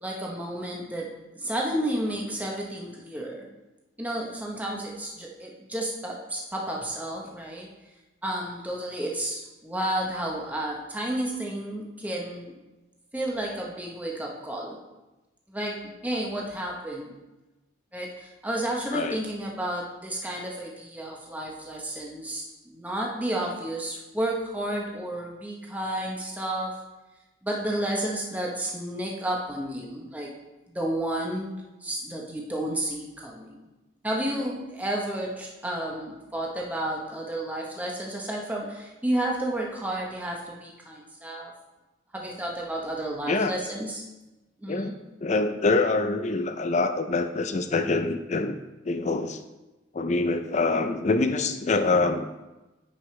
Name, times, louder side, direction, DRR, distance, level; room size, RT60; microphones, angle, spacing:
voice 1, 0.0-3.5 4.0-7.7 8.2-12.6 13.1-14.8 15.5-17.1 17.9-26.7 27.4-30.3 30.7-31.5 31.8-33.6 34.0-41.5 42.1-44.0 44.6-44.9, right 1 dB, 10° right, -2 dB, 0.9 m, -31 dB
voice 2, 45.2-48.5 48.9-49.4 49.9-52.3, left 3 dB, 35° left, 8 dB, 0.4 m, -25 dB
9.5 x 5.0 x 3.2 m, 1.1 s
head